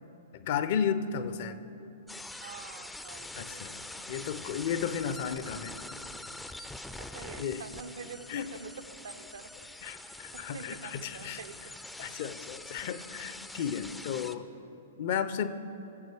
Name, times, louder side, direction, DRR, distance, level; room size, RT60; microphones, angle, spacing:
voice 1, 0.3-1.6 3.4-3.8 4.1-5.7 7.4-7.6 8.3-8.5 9.8-11.4 12.0-14.5 15.0-15.5, left 8 dB, 50° left, 12 dB, 0.6 m, -33 dB
sound 1, 2.1-14.4, left 2 dB, 5° left, 0.4 m, -44 dB
voice 2, 2.4-4.1 4.5-4.7 7.0-9.7 10.0-11.6, right 6 dB, 65° right, 8 dB, 0.7 m, -47 dB
19.5 x 7.9 x 3.4 m, 3.0 s
figure-of-eight pair, 110°, 0 cm